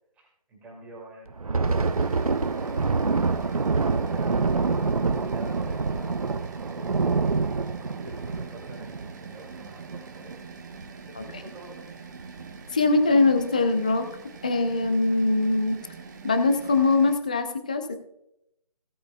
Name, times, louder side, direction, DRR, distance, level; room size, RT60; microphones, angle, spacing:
voice 1, 0.2-2.1 2.6-6.2 6.7-10.4 11.2-11.8, right 1 dB, 5° right, -3 dB, 2.4 m, -47 dB
Thunder, 1.3-10.3 10.7-10.9 11.3-11.5 12.2-12.6, right 4 dB, 65° right, 0.8 m, -26 dB
sound 1, 1.6-17.2, right 5 dB, 30° right, 1.1 m, -44 dB
voice 2, 12.7-14.0 14.4-15.8 16.2-17.9, left 3 dB, 10° left, 8 dB, 0.4 m, -22 dB
17.0 x 8.0 x 2.3 m, 0.80 s
figure-of-eight pair, 150°, 20 cm